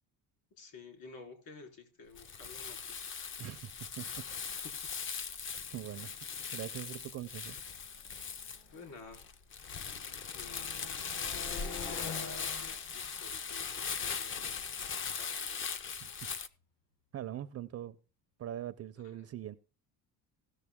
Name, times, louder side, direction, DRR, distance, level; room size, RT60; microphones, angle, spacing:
voice 1, 0.6-3.3 4.6-4.7 8.7-9.2 10.3-10.8 11.3-14.6 15.2-15.6 19.2-19.3, left 4 dB, 60° left, 3.9 m, -52 dB
Crumpling crinkling, 2.1-16.5, left 6 dB, 30° left, 0.6 m, -40 dB
voice 2, 3.4-4.2 5.7-6.1 6.5-7.6 16.0-16.1 17.1-18.0 18.4-19.6, right 11 dB, 40° right, 0.5 m, -42 dB
sound 1, 3.9-4.0 4.2-4.6 5.3-9.3 9.6-16.3, left 5 dB, 80° left, 4.2 m, -51 dB
17.0 x 6.5 x 3.6 m
cardioid pair, 135°, 41 cm